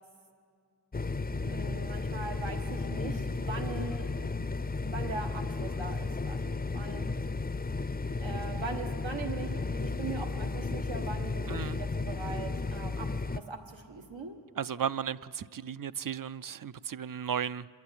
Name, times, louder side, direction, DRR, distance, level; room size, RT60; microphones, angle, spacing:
sound 1, 0.9-13.4, left 3 dB, 20° left, 0.5 m, -34 dB
voice 1, 1.3-4.1 4.8-7.1 8.2-14.4, right 4 dB, 90° right, 4 dB, 1.4 m, -41 dB
voice 2, 11.5-11.8 14.6-17.7, right 8 dB, 50° right, 16 dB, 0.4 m, -35 dB
26.0 x 10.5 x 9.8 m, 2.3 s
wide cardioid pair, 45°, 44 cm